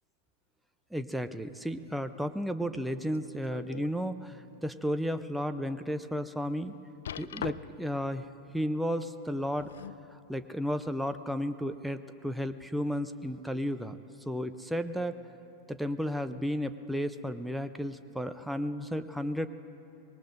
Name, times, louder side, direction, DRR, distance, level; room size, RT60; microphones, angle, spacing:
voice 1, 0.9-6.7 7.2-8.3 8.5-9.7 10.1-14.0 14.3-15.2 15.7-19.5, equal, ahead, 9 dB, 0.6 m, -33 dB
sound 1, 3.1-4.0 4.5-4.6 5.2-5.3 7.1-7.9 9.3-10.1 11.0-11.1, left 9 dB, 75° left, 0.4 m, -41 dB
25.0 x 21.0 x 2.6 m, 2.7 s
hypercardioid pair, 95°, 0 cm